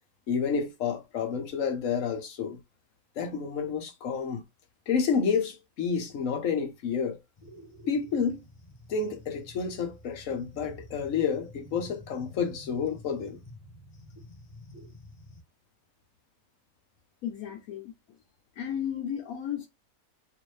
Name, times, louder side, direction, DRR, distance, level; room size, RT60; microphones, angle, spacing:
voice 1, 0.3-2.6 3.2-4.4 4.9-7.2 7.9-8.4 8.9-13.4, left 6 dB, 65° left, 1.1 m, -29 dB
sound 1, 7.4-15.4, left 1 dB, 30° left, 0.9 m, -50 dB
voice 2, 17.2-17.9 18.6-19.7, left 9 dB, 85° left, 1.2 m, -34 dB
3.1 x 2.6 x 3.1 m
omnidirectional pair, 1.5 m